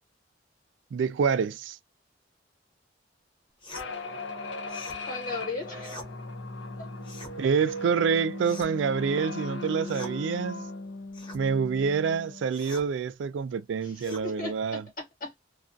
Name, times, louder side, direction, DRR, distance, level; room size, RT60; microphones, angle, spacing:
voice 1, 0.9-1.8 7.4-10.6 11.3-14.9, right 6 dB, 85° right, 0.3 m, -27 dB
sound 1, 3.6-3.9 4.7-5.0 5.8-6.1 7.0-7.4 8.4-8.9 9.8-10.2 11.1-11.4 12.5-12.9 14.0-14.3, left 1 dB, 25° left, 0.9 m, -44 dB
sound 2, 3.7-12.5, left 2 dB, 80° left, 0.7 m, -38 dB
voice 2, 5.1-5.9 6.8-6.9 13.8-15.5, left 3 dB, 45° left, 1.2 m, -37 dB
2.3 x 2.3 x 2.5 m
head